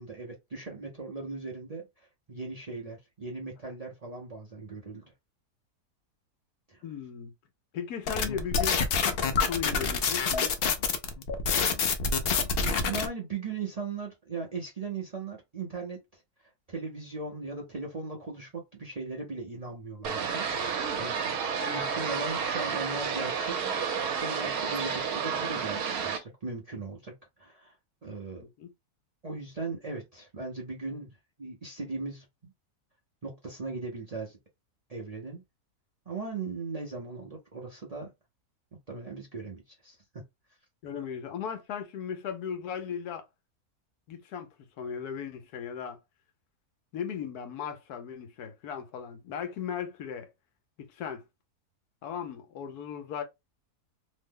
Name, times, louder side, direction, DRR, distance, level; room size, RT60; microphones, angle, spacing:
voice 1, 0.0-5.0 6.7-6.8 12.8-16.2 16.7-21.4 21.7-23.6 24.2-27.8 28.0-28.4 29.2-32.5 33.2-34.4 34.9-35.4 36.1-38.1 38.9-40.2, right 4 dB, 45° right, 0.5 m, -38 dB
voice 2, 6.8-7.3 7.7-8.8 9.3-10.5 28.4-28.7 40.8-43.2 44.1-44.5 44.8-46.0 46.9-50.3 50.9-51.2 52.0-53.2, left 7 dB, 85° left, 1.2 m, -37 dB
sound 1, 8.1-13.1, left 5 dB, 65° left, 0.6 m, -27 dB
sound 2, 20.0-26.2, right 6 dB, 75° right, 1.2 m, -31 dB
3.1 x 2.1 x 3.5 m
omnidirectional pair, 1.6 m